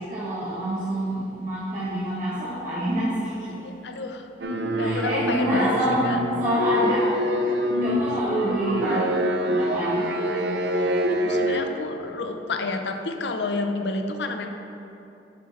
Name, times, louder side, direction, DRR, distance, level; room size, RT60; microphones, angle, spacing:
voice 1, 0.0-3.5 4.8-7.1 7.8-9.1 9.5-10.1, right 1 dB, 45° right, -9 dB, 1.3 m, -26 dB
voice 2, 3.5-4.3 4.8-5.8 6.0-6.2 7.5-7.6 8.9-9.0 11.1-14.5, left 3 dB, 75° left, 5 dB, 0.6 m, -30 dB
sound 1, 4.4-11.6, equal, 75° right, 0.6 m, -25 dB
9.6 x 4.4 x 4.1 m, 2.7 s
head